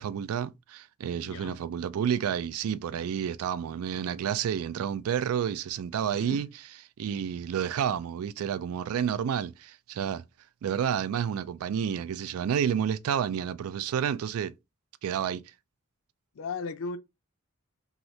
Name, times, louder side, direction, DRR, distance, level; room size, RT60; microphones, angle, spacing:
voice 1, 0.0-6.5 7.0-10.2 10.6-14.6 15.0-15.5, right 8 dB, 85° right, 0.3 m, -30 dB
voice 2, 1.2-1.6 6.1-6.4 16.3-17.0, left 4 dB, 65° left, 0.4 m, -36 dB
3.1 x 2.7 x 2.7 m
head